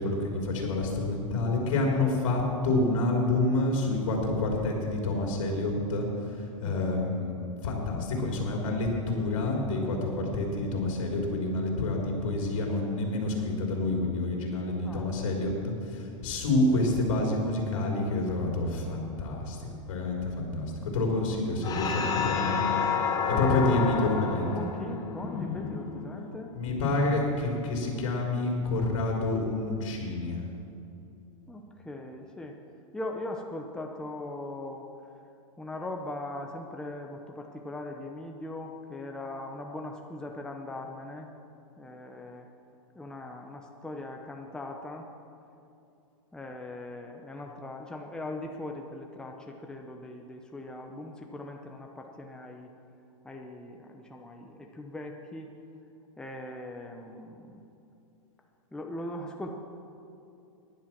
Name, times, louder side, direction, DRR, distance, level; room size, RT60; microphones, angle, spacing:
voice 1, 0.0-6.4 6.6-22.7 23.3-24.5 26.5-30.4, left 2 dB, 65° left, 0 dB, 3.8 m, -28 dB
voice 2, 6.6-7.0 14.8-15.1 23.3-23.8 24.5-26.5 31.5-32.6 32.9-34.9 35.6-41.3 41.8-42.5 43.0-45.1 46.3-52.7 53.2-55.5 56.2-57.7 58.7-59.5, left 1 dB, 5° left, 2 dB, 0.8 m, -40 dB
sound 1, 21.6-26.4, left 6 dB, 20° left, 1.4 m, -30 dB
15.0 x 10.5 x 6.0 m, 2.7 s
hypercardioid pair, 140°, 18 cm